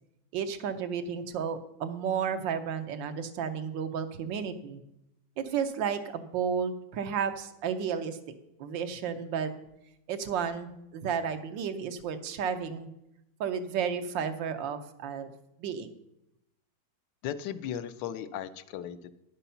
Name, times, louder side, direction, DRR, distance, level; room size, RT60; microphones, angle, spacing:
voice 1, 0.3-4.8 5.4-8.2 8.6-9.5 10.1-12.9 13.4-15.3 15.6-15.9, right 7 dB, 90° right, 9 dB, 1.5 m, -32 dB
voice 2, 17.2-19.1, left 9 dB, 80° left, 12 dB, 1.3 m, -36 dB
10.0 x 6.9 x 5.6 m, 0.87 s
omnidirectional pair, 2.0 m